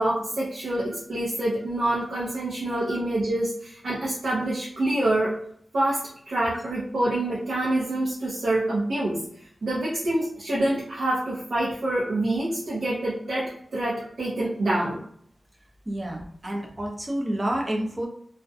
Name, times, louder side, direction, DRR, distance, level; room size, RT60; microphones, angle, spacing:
voice 1, 0.0-5.4 5.7-9.2 9.6-15.0, right 1 dB, 80° right, -7 dB, 0.6 m, -26 dB
voice 2, 15.9-18.1, right 1 dB, 25° right, 0 dB, 0.5 m, -29 dB
2.4 x 2.1 x 2.6 m, 0.64 s
wide cardioid pair, 125°, 0 cm